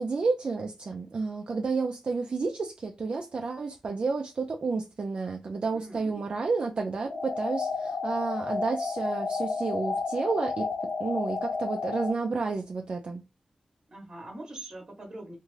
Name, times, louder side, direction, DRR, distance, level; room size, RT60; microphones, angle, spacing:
voice 1, 0.0-10.7 11.0-13.2, right 4 dB, 50° right, 0.4 m, -31 dB
voice 2, 5.7-6.2 13.9-15.4, right 2 dB, 30° right, 0.9 m, -43 dB
sound 1, 7.1-12.1, left 4 dB, 90° left, 0.6 m, -31 dB
2.5 x 2.4 x 3.1 m
wide cardioid pair, 165°, 2 cm